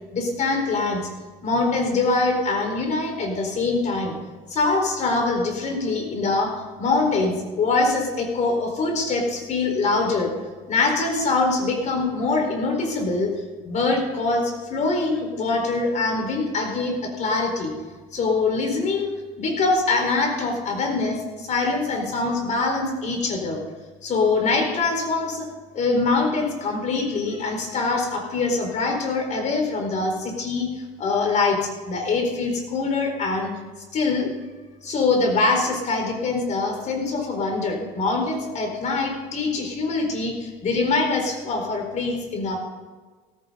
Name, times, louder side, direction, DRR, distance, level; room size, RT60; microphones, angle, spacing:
voice 1, 0.1-1.0 1.4-4.1 4.5-6.5 6.8-10.3 10.7-13.3 13.6-17.7 18.1-19.1 19.4-23.6 24.0-25.5 25.7-30.7 31.0-33.5 33.9-34.3 34.8-42.6, left 3 dB, 45° left, 2 dB, 4.6 m, -23 dB
16.5 x 15.5 x 4.1 m, 1.4 s
supercardioid pair, 100°, 17 cm